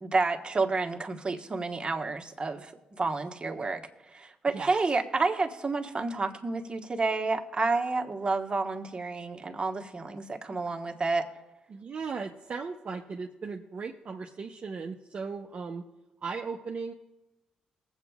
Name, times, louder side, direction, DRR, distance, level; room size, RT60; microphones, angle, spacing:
voice 1, 0.0-2.7 3.0-3.8 4.1-11.3, right 3 dB, 30° right, 3 dB, 1.3 m, -30 dB
voice 2, 11.7-15.8 16.2-16.9, right 5 dB, 50° right, 1 dB, 0.7 m, -37 dB
21.0 x 8.2 x 2.4 m, 1.0 s
hypercardioid pair, 50°, 3 cm